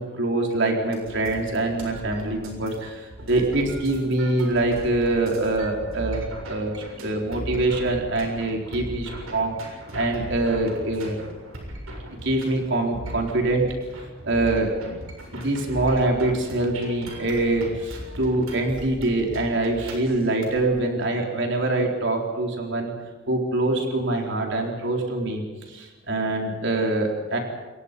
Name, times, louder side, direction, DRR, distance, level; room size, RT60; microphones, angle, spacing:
voice 1, 0.0-9.6 9.9-11.2 12.2-13.7 14.2-15.0 15.3-22.9 23.3-27.4, right 2 dB, 60° right, 1 dB, 4.3 m, -24 dB
sound 1, 0.9-20.6, right 1 dB, 85° right, 6.9 m, -38 dB
28.0 x 22.5 x 5.5 m, 1.3 s
head